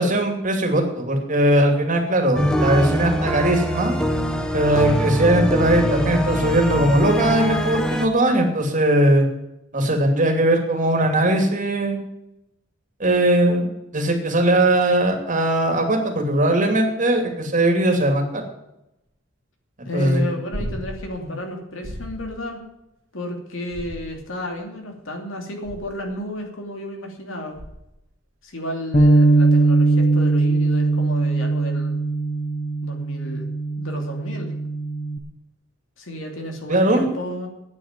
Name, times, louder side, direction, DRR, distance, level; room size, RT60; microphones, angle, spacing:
voice 1, 0.0-3.9 4.5-9.3 9.7-12.0 13.0-13.7 13.9-18.5 19.9-20.2 21.2-21.3 36.7-37.0, right 1 dB, 40° right, 3 dB, 2.7 m, -19 dB
sound 1, 2.4-8.1, equal, 5° left, 1.1 m, -23 dB
voice 2, 19.8-22.6 23.1-27.6 28.4-32.0 32.8-33.5 33.8-34.5 36.0-37.5, left 1 dB, 80° left, 2 dB, 2.8 m, -32 dB
sound 2, 20.5-21.2 21.8-22.4 23.7-24.4 25.6-26.1 27.6-28.0 30.4-30.5, equal, 80° right, 2.1 m, -34 dB
Bass guitar, 28.9-35.2, right 2 dB, 45° left, 1.3 m, -20 dB
9.2 x 8.9 x 9.1 m, 0.87 s
head